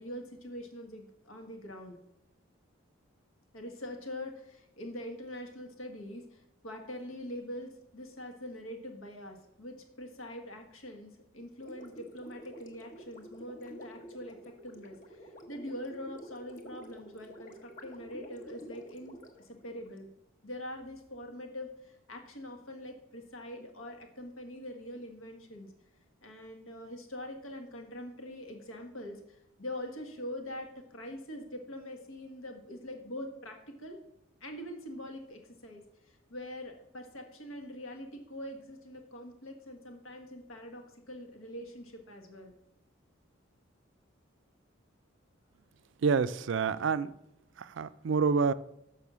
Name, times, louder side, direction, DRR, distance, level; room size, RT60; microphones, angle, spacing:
voice 1, 0.0-2.0 3.5-20.1 20.4-25.7 26.2-34.0 34.4-42.5, left 1 dB, 80° left, 1.5 m, -44 dB
Gurgling, 11.6-20.0, equal, 40° left, 1.0 m, -49 dB
voice 2, 46.0-47.1 47.6-48.5, right 5 dB, 60° right, 0.3 m, -28 dB
6.9 x 5.6 x 6.0 m
head